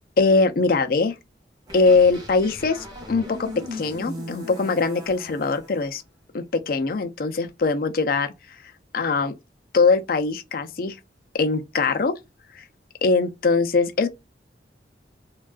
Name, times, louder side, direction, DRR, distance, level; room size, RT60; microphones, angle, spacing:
voice 1, 0.2-1.2 1.7-6.0 6.3-8.3 8.9-9.3 9.7-11.0 11.3-12.1 12.5-12.6 13.0-14.1, left 4 dB, 50° left, 0.4 m, -21 dB
sound 1, 1.7-5.8, left 1 dB, 20° right, 0.8 m, -38 dB
3.5 x 2.3 x 2.3 m
head